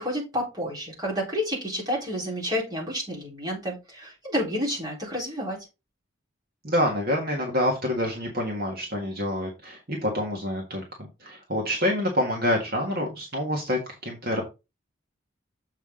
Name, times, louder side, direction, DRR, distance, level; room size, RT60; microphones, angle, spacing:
voice 1, 0.0-5.6, equal, 20° right, -4 dB, 4.1 m, -30 dB
voice 2, 6.6-10.8 11.2-14.4, equal, 50° right, 0 dB, 1.6 m, -27 dB
7.3 x 5.8 x 3.7 m, 0.26 s
head